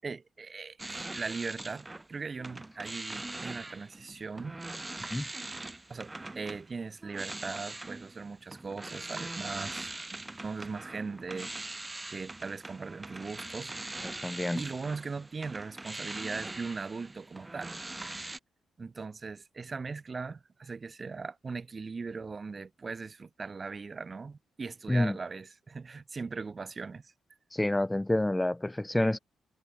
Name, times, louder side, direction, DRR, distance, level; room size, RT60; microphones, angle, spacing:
voice 1, 0.0-4.6 5.1-5.3 5.9-6.1 6.4-14.0 14.5-17.8 18.8-27.1, right 4 dB, 30° right, 7.5 m, -39 dB
sound 1, 0.8-2.1 2.4-18.4, right 2 dB, 15° right, 2.4 m, -42 dB
voice 2, 14.0-14.6 24.9-25.2 27.5-29.2, left 1 dB, 10° left, 1.7 m, -28 dB
cardioid pair, 135°, 0 cm